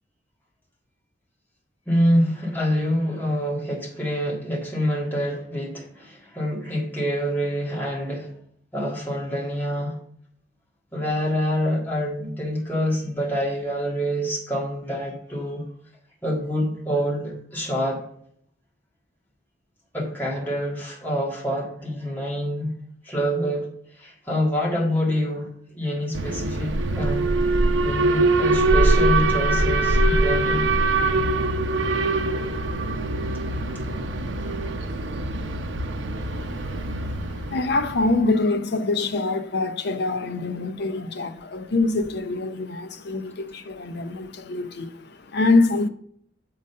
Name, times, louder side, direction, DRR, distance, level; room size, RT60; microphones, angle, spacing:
voice 1, 1.9-8.3 8.7-10.0 10.9-15.7 16.2-18.0 19.9-22.7 23.0-27.3 27.8-30.7, equal, 10° left, 1.8 m, -26 dB
Alarm, 26.1-38.2, right 2 dB, 75° right, 0.7 m, -23 dB
voice 2, 36.3-45.9, left 3 dB, 60° left, 0.6 m, -25 dB
7.4 x 4.0 x 5.4 m
head